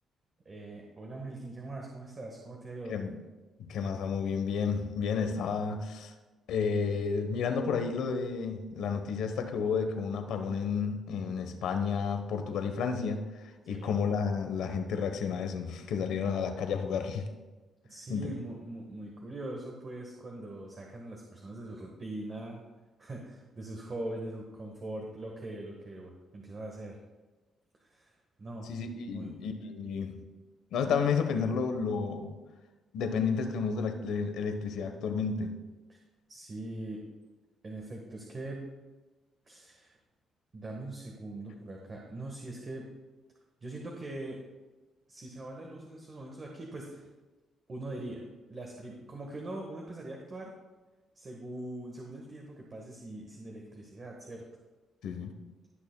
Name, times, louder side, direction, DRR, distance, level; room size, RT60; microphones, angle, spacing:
voice 1, 0.4-3.0 13.6-14.0 17.8-22.6 23.0-27.0 27.8-28.7 29.1-29.4 35.9-36.0 36.3-37.0 37.6-38.6 39.5-40.0 40.5-42.8 43.6-44.4 45.1-47.1 47.7-48.2 48.5-50.5 51.1-54.4, right 2 dB, 35° right, 0 dB, 1.3 m, -42 dB
voice 2, 3.6-6.1 6.5-17.3 18.1-18.3 28.6-30.2 30.7-32.4 32.9-35.5 55.0-55.3, left 5 dB, 80° left, 6 dB, 1.0 m, -31 dB
17.0 x 6.4 x 2.2 m, 1.2 s
cardioid pair, 90°, 0 cm